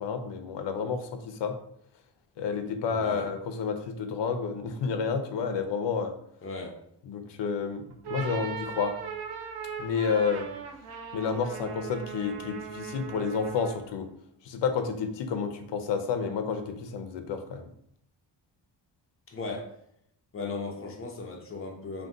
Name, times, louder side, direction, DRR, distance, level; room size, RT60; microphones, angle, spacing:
voice 1, 0.0-1.6 2.4-6.1 7.1-9.0 9.8-10.5 11.1-14.1 14.4-17.7, left 5 dB, 70° left, 0.6 m, -30 dB
voice 2, 2.9-3.3 6.4-6.8 19.3-19.7 20.3-22.1, left 3 dB, 30° left, 0.6 m, -37 dB
sound 1, 7.9-13.9, right 6 dB, 60° right, 0.6 m, -39 dB
2.6 x 2.2 x 3.6 m
cardioid pair, 90°, 44 cm